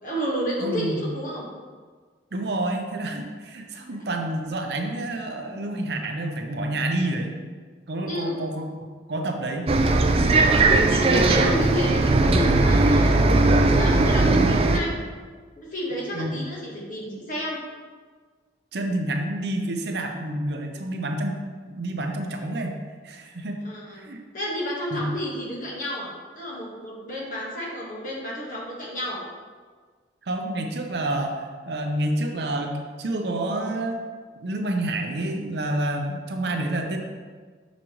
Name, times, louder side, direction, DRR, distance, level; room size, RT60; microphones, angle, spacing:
voice 1, 0.0-1.4 3.9-4.0 8.0-8.4 10.4-14.9 15.5-17.6 23.6-24.0 24.3-26.1 26.3-29.2, equal, 45° left, -4 dB, 1.3 m, -31 dB
voice 2, 0.6-1.0 2.3-7.4 7.9-8.7 9.1-9.7 16.1-16.4 18.7-21.4 21.6-22.8 23.0-23.6 24.0-24.2 24.9-25.0 30.3-34.0 34.4-37.0, right 1 dB, 65° right, 3 dB, 0.6 m, -28 dB
Bus, 9.7-14.8, right 2 dB, 30° right, 0.3 m, -18 dB
6.2 x 5.1 x 3.0 m, 1.5 s
head